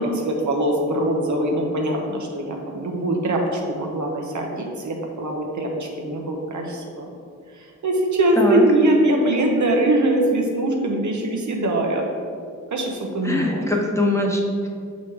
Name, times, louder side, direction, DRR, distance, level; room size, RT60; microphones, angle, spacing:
voice 1, 0.2-7.1 7.5-12.1 12.7-13.6, right 1 dB, 70° right, 1 dB, 1.0 m, -22 dB
voice 2, 13.2-14.7, left 1 dB, 10° left, -1 dB, 0.9 m, -22 dB
6.2 x 4.1 x 4.8 m, 2.3 s
cardioid pair, 75°, 30 cm